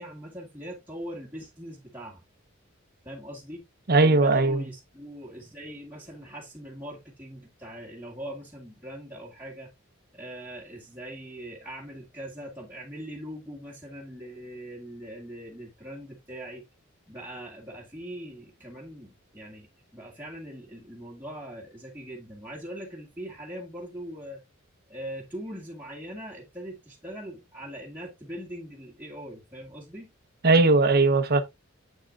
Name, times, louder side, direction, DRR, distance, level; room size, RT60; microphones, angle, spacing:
voice 1, 0.0-2.2 3.0-3.7 4.0-9.7 10.1-16.7 17.1-19.7 19.9-24.4 24.9-30.1, equal, 10° right, 2.0 m, -41 dB
voice 2, 3.9-4.6 30.4-31.4, right 3 dB, 50° right, 0.9 m, -19 dB
7.8 x 6.2 x 2.4 m
head